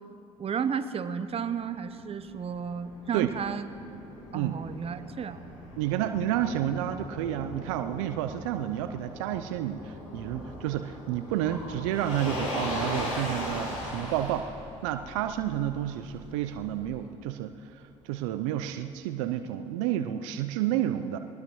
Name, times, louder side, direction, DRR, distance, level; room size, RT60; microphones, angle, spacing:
voice 1, 0.4-3.7 4.3-5.4, right 7 dB, 35° right, 11 dB, 0.8 m, -32 dB
Motor vehicle (road), 1.9-16.9, left 1 dB, 90° left, 4.8 m, -39 dB
voice 2, 5.8-14.5 14.8-21.2, right 11 dB, 75° right, 9 dB, 0.6 m, -30 dB
23.0 x 19.5 x 3.1 m, 2.7 s
hypercardioid pair, 60°, 17 cm